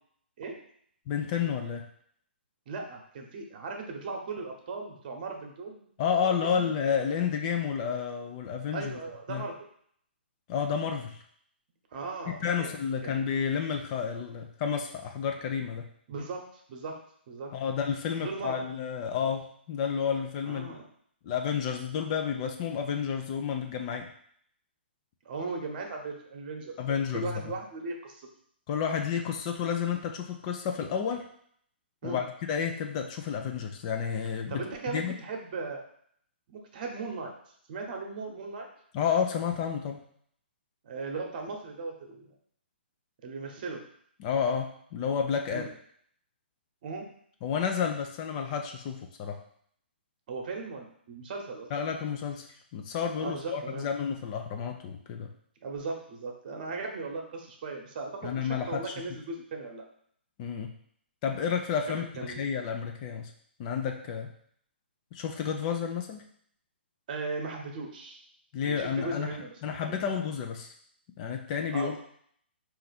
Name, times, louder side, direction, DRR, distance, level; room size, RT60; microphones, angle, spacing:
voice 1, 1.1-1.8 6.0-8.9 9.3-9.4 10.5-11.2 12.4-15.9 17.5-20.7 21.2-24.1 26.8-27.3 28.7-31.2 32.0-34.6 34.9-35.1 38.9-40.0 44.2-45.7 47.4-49.4 51.7-52.5 52.7-55.3 58.2-58.8 60.4-60.7 61.2-63.3 63.6-64.3 65.1-66.2 68.5-69.3 69.6-70.7 71.2-72.0, left 7 dB, 35° left, 3 dB, 0.6 m, -30 dB
voice 2, 2.7-6.7 8.7-9.6 11.9-12.7 13.0-13.2 16.1-17.0 17.3-17.5 18.2-18.6 20.4-20.9 25.2-28.3 32.0-32.2 34.5-35.8 36.5-37.3 37.7-38.7 40.8-42.3 43.2-43.8 45.5-45.7 46.8-47.1 50.3-51.7 53.2-53.9 55.6-59.8 61.9-62.5 67.1-68.2 68.6-69.9 71.7-72.0, right 3 dB, 50° right, 2 dB, 1.0 m, -38 dB
4.3 x 2.6 x 4.1 m, 0.64 s
hypercardioid pair, 135°, 6 cm